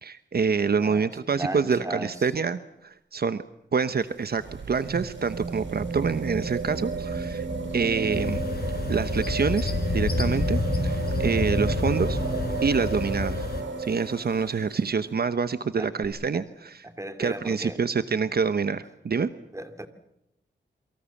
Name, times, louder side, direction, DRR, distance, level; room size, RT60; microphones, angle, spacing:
voice 1, 0.0-3.4 3.7-4.4 4.7-7.5 7.7-8.4 8.9-12.2 12.6-13.5 13.8-16.8 17.2-19.3, right 5 dB, 60° right, 12 dB, 1.0 m, -26 dB
voice 2, 0.7-1.1 1.4-2.3 15.8-15.9 16.3-16.4 16.8-17.8 19.5-19.9, right 1 dB, 15° right, 8 dB, 2.5 m, -36 dB
sound 1, 3.9-14.8 16.0-16.1, right 4 dB, 80° right, 3.7 m, -32 dB
sound 2, 8.1-13.6, left 4 dB, 55° left, 4.9 m, -29 dB
28.5 x 24.0 x 7.2 m, 0.81 s
wide cardioid pair, 115°, 19 cm